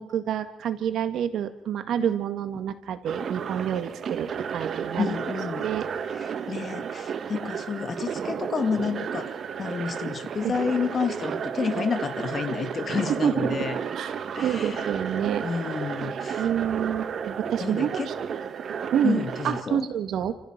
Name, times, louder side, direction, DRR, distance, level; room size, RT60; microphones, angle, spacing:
voice 1, 0.0-5.2 5.5-5.9 10.4-10.5 13.2-13.5 14.0-14.1 14.4-15.5 16.3-18.0 18.7-20.3, right 9 dB, 75° right, 9 dB, 2.0 m, -28 dB
sound 1, 3.1-19.6, right 7 dB, 55° right, 1.5 m, -33 dB
voice 2, 5.0-5.7 6.1-9.3 9.6-13.8 14.4-14.9 15.4-16.5 17.6-18.1 19.0-19.9, left 6 dB, 45° left, 10 dB, 1.9 m, -30 dB
29.0 x 15.0 x 6.0 m, 0.84 s
cardioid pair, 90°, 0 cm